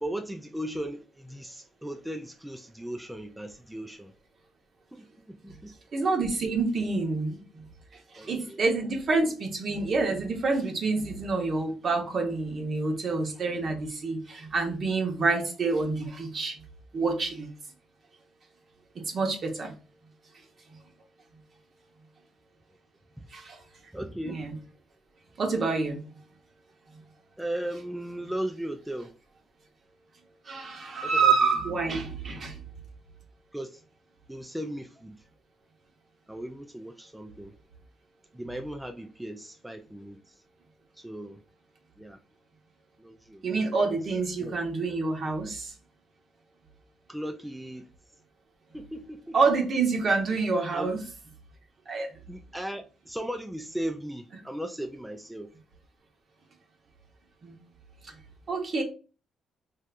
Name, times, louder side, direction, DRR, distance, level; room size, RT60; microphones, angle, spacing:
voice 1, 0.0-4.1 4.9-5.7 8.2-8.6 23.2-23.3 23.9-24.4 27.4-29.1 31.0-31.3 33.5-33.8 34.3-35.2 36.3-37.5 38.3-40.3 41.0-41.4 42.0-42.2 43.0-44.0 44.4-44.6 47.1-47.8 48.7-49.4 50.7-50.9 52.3-55.5, right 1 dB, 5° right, 0.3 m, -37 dB
voice 2, 5.9-7.4 8.1-16.6 16.9-17.5 18.9-19.7 23.3-23.6 24.2-24.5 25.4-26.0 30.5-32.6 43.4-45.7 49.3-51.0 51.9-52.1 57.4-57.6 58.0-58.1 58.5-58.8, right 4 dB, 50° right, 0.9 m, -27 dB
3.3 x 2.7 x 2.4 m
cardioid pair, 90°, 0 cm